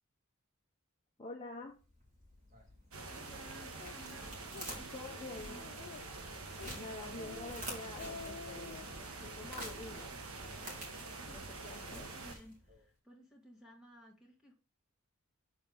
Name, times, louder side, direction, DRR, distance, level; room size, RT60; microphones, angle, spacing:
voice 1, 1.2-1.8 4.9-5.6 6.8-8.8 9.2-10.1 11.3-12.1, left 2 dB, 25° left, -1 dB, 0.9 m, -47 dB
sound 1, 1.8-12.8, right 1 dB, 40° right, 2.6 m, -50 dB
sound 2, 2.9-12.3, right 3 dB, 90° right, 1.2 m, -46 dB
voice 2, 3.1-4.4 4.7-5.7 11.3-14.5, equal, 5° right, -2 dB, 2.1 m, -57 dB
Speech, 3.8-4.0 4.4-4.7 5.1-5.2 5.6-6.2 6.6-6.8 7.1-7.5 7.8-8.9, left 5 dB, 60° left, 0.4 m, -48 dB
6.6 x 4.2 x 5.4 m, 0.35 s
head